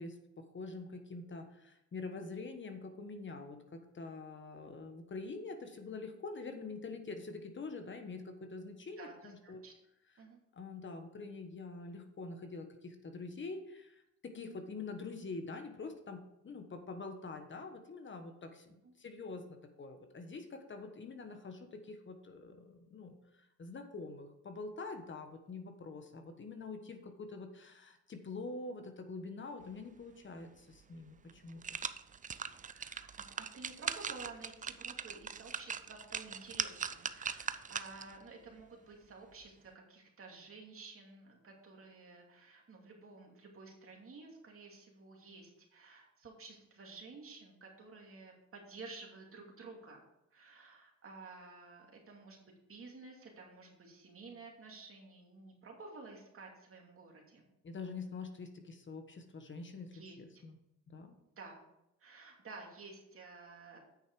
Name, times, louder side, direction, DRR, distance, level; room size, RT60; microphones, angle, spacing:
voice 1, 0.0-9.6 10.5-31.8 57.6-60.6 60.9-61.1, left 3 dB, 40° left, 6 dB, 1.2 m, -45 dB
voice 2, 9.0-9.7 10.2-10.4 18.8-18.9 32.7-50.0 50.3-52.4 52.7-57.5 59.9-60.2 61.2-61.6 62.0-63.8, right 3 dB, 45° right, 0 dB, 2.6 m, -52 dB
sound 1, 30.7-30.8 31.3-38.2 38.6-38.7, right 6 dB, 25° right, 0.5 m, -41 dB
8.8 x 6.4 x 4.7 m, 0.85 s
cardioid pair, 90°, 30 cm